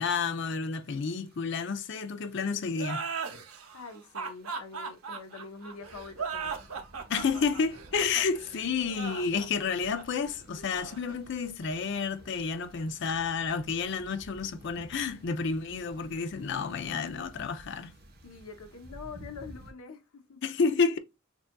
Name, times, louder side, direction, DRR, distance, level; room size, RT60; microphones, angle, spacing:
voice 1, 0.0-3.0 7.1-17.9 20.4-21.0, left 5 dB, 55° left, 0.5 m, -30 dB
sound 1, 0.7-19.7, right 1 dB, 45° right, 1.0 m, -54 dB
sound 2, 2.7-12.0, right 5 dB, 90° right, 0.8 m, -38 dB
voice 2, 3.7-6.7 18.2-20.4, left 4 dB, 85° left, 0.9 m, -45 dB
6.6 x 2.4 x 2.2 m
head